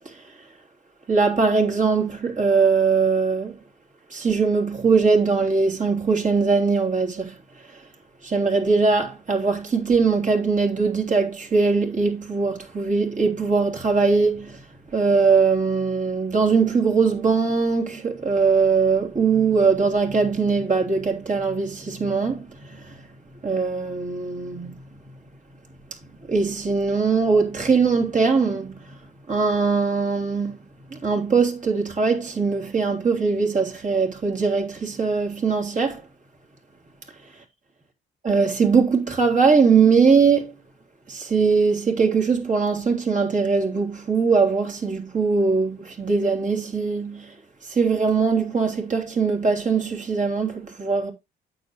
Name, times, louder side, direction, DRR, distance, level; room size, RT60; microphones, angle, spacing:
voice 1, 1.1-3.6 4.1-7.4 8.2-14.6 14.9-22.9 23.4-24.8 26.3-28.8 29.3-30.6 30.9-36.0 38.2-40.5 41.1-47.3 47.7-51.1, right 4 dB, 40° right, 3.4 m, -21 dB
9.1 x 7.9 x 3.1 m
cardioid pair, 90°, 20 cm